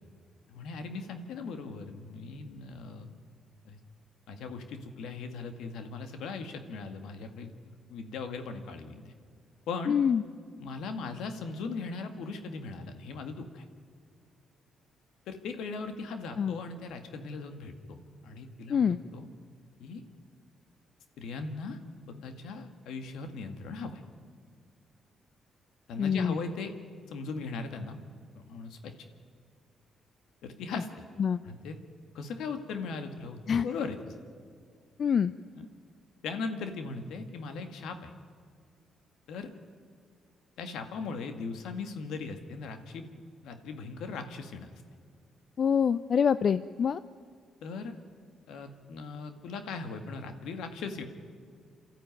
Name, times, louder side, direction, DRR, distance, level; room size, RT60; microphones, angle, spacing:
voice 1, 0.5-3.1 3.6-3.8 4.3-7.5 7.9-9.1 9.7-9.9 10.6-13.6 15.3-18.0 18.2-19.3 19.8-20.0 21.2-21.8 22.1-24.0 25.9-26.7 27.1-28.0 28.3-28.9 30.4-30.9 31.4-31.8 32.1-34.2 35.6-35.7 36.2-38.1 39.3-39.5 40.6-44.7 47.6-47.9 48.5-51.0, left 4 dB, 80° left, 7 dB, 2.0 m, -39 dB
voice 2, 9.9-10.2 16.4-16.6 18.7-19.0 26.0-26.4 31.2-31.4 33.5-33.7 35.0-35.3 45.6-47.0, left 7 dB, 55° left, 15 dB, 0.5 m, -25 dB
28.0 x 13.0 x 9.2 m, 2.1 s
supercardioid pair, 65°, 0 cm